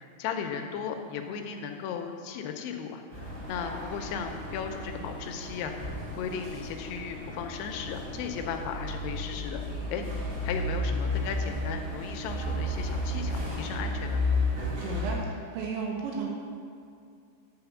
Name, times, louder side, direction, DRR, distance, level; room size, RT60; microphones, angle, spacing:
voice 1, 0.0-9.6 9.9-10.1 10.4-14.2, left 7 dB, 80° left, 5 dB, 2.5 m, -36 dB
sound 1, 3.1-15.2, left 1 dB, 50° right, 2.6 m, -33 dB
voice 2, 14.8-16.3, right 5 dB, 90° right, -1 dB, 3.5 m, -34 dB
10.5 x 4.2 x 6.9 m, 2.4 s
omnidirectional pair, 5.0 m